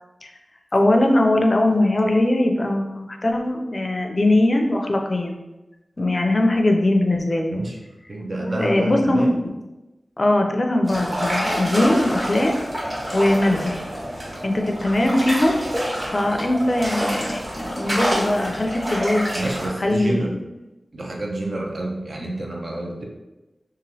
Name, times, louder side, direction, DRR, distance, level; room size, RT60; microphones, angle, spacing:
voice 1, 0.7-5.4 6.0-7.6 8.4-9.5 10.2-12.6 13.1-13.8 14.4-15.6 16.0-19.3 19.8-20.3, left 1 dB, 45° left, 3 dB, 0.4 m, -20 dB
voice 2, 8.1-9.3 19.3-20.4 20.9-23.1, right 1 dB, 60° right, 0 dB, 0.5 m, -28 dB
sound 1, 10.8-19.7, equal, 40° right, 1.2 m, -27 dB
2.9 x 2.5 x 2.7 m, 1.0 s
wide cardioid pair, 55°, 0 cm